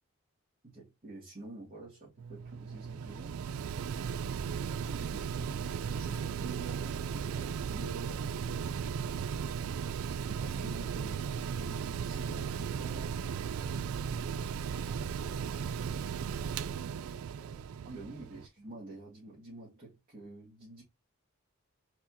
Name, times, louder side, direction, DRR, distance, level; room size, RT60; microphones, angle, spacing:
voice 1, 0.6-3.5 4.8-8.3 10.3-11.1 11.6-13.3 17.8-20.8, right 2 dB, 40° right, 2.2 m, -48 dB
Mechanical fan, 2.2-18.5, right 7 dB, 75° right, 0.3 m, -36 dB
voice 2, 5.2-5.7 10.9-11.2 15.0-16.0 16.3-17.7 18.0-18.4, left 1 dB, 5° left, 2.2 m, -59 dB
4.5 x 4.1 x 2.9 m
head